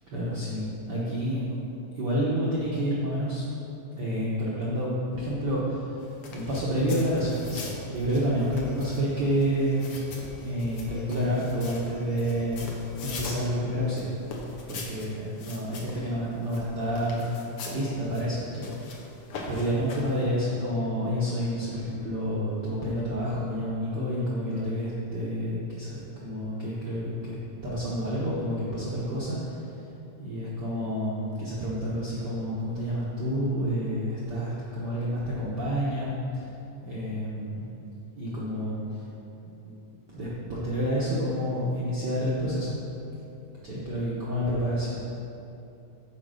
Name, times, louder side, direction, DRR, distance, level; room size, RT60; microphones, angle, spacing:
voice 1, 0.1-1.6 1.9-3.4 4.0-10.0 10.4-12.7 13.0-14.1 14.7-18.7 19.5-27.4 27.6-29.6 30.2-36.5 36.8-37.7 38.1-39.0 39.6-39.7 40.1-42.8 43.6-45.0, equal, 80° right, -7 dB, 0.9 m, -29 dB
sound 1, 6.0-20.3, left 3 dB, 70° left, 1.4 m, -43 dB
sound 2, 7.4-13.9, left 1 dB, 30° left, 1.9 m, -45 dB
6.8 x 5.0 x 6.2 m, 2.9 s
omnidirectional pair, 3.5 m